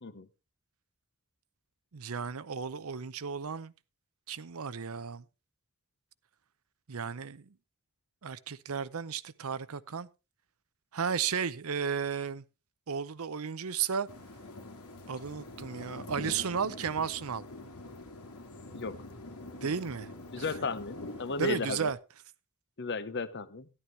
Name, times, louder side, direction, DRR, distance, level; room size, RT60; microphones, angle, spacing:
voice 1, 1.9-3.7 4.3-5.2 6.9-7.5 8.2-10.1 10.9-12.4 12.9-14.1 15.1-17.4 19.5-20.1 20.4-20.5 21.4-22.0, right 6 dB, 70° right, 0.7 m, -34 dB
sound 1, 14.1-21.9, left 2 dB, 85° left, 2.2 m, -45 dB
voice 2, 20.3-21.9 22.8-23.7, left 3 dB, 50° left, 0.9 m, -35 dB
13.0 x 11.0 x 3.2 m
head